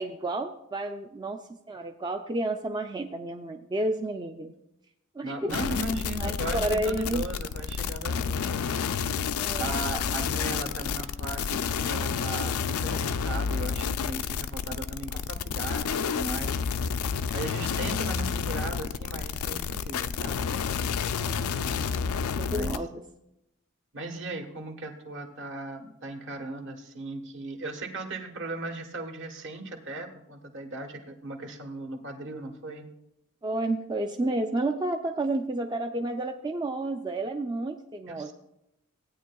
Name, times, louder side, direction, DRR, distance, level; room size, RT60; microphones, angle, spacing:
voice 1, 0.0-1.4 1.7-4.5 5.2-5.6 6.2-7.2 9.4-9.8 21.1-23.0 33.4-38.3, right 2 dB, 20° right, 4 dB, 0.4 m, -31 dB
voice 2, 5.2-8.8 9.6-16.6 17.3-20.5 22.5-22.9 23.9-32.9 38.1-38.3, right 2 dB, 60° right, 4 dB, 1.3 m, -37 dB
sound 1, 5.5-22.8, left 6 dB, 80° left, 0.4 m, -30 dB
17.0 x 9.2 x 2.3 m, 0.84 s
head